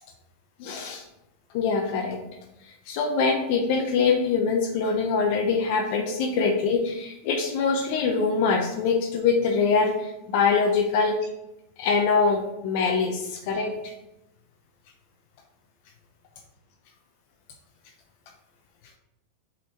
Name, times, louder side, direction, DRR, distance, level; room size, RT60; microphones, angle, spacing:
voice 1, 0.6-1.0 1.5-2.2 2.9-11.2 11.8-13.9, left 5 dB, 60° left, 3 dB, 0.8 m, -24 dB
5.6 x 4.1 x 4.4 m, 0.89 s
hypercardioid pair, 115°, 0 cm